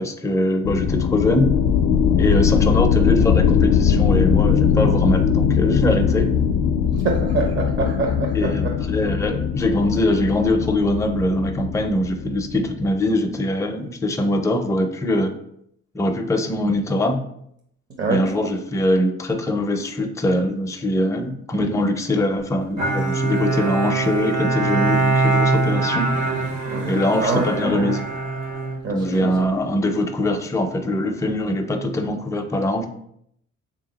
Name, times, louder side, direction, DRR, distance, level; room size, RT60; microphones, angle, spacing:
voice 1, 0.0-1.5 2.2-6.3 8.3-15.3 15.9-17.2 18.0-26.1 26.8-28.0 28.9-32.9, left 1 dB, 10° left, 4 dB, 0.4 m, -22 dB
sound 1, 0.6-12.9, left 7 dB, 65° left, 0.5 m, -20 dB
voice 2, 7.0-8.5 18.0-18.2 26.7-26.9 27.2-27.4 28.8-29.3, right 3 dB, 40° right, 1 dB, 0.7 m, -24 dB
Bowed string instrument, 22.8-29.4, right 3 dB, 65° right, 1.2 m, -23 dB
3.5 x 2.8 x 3.9 m, 0.71 s
cardioid pair, 90°, 30 cm